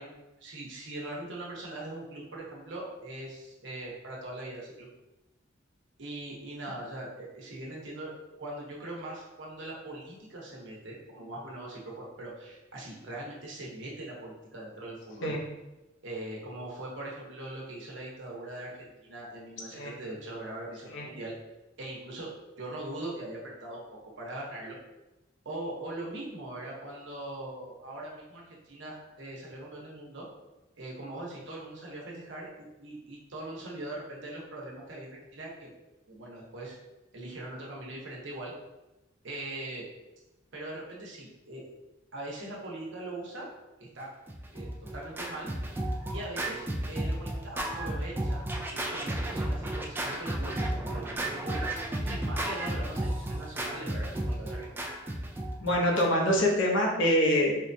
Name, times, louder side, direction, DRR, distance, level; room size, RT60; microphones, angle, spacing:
voice 1, 0.0-4.9 6.0-8.1 8.4-15.4 16.0-21.3 21.8-22.3 22.6-24.8 25.4-30.3 30.8-35.7 36.1-36.7 37.1-38.5 39.2-39.9 40.5-41.6 42.1-43.5 43.8-44.1 44.5-45.5 46.1-48.4 48.7-54.9, right 1 dB, 70° right, -3 dB, 0.9 m, -41 dB
Scratching (performance technique), 44.3-56.4, right 1 dB, 10° right, 0.3 m, -33 dB
voice 2, 55.6-57.6, equal, 80° left, -1 dB, 0.8 m, -25 dB
4.4 x 2.2 x 2.6 m, 1.0 s
head